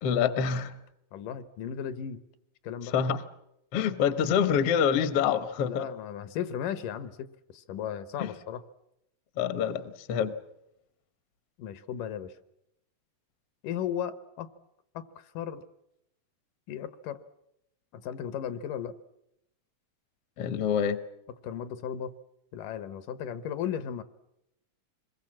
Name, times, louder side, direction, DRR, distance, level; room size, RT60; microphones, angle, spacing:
voice 1, 0.0-0.8 2.8-3.2 3.7-5.9 8.2-8.3 9.4-10.3 20.4-21.0, left 7 dB, 60° left, 12 dB, 1.6 m, -26 dB
voice 2, 1.1-2.2 2.6-2.9 5.6-8.6 11.6-12.3 13.6-14.5 14.9-15.6 16.7-17.2 17.9-18.9 21.4-22.1 22.5-24.0, left 9 dB, 75° left, 13 dB, 2.6 m, -35 dB
26.0 x 21.5 x 7.5 m, 0.83 s
omnidirectional pair, 3.8 m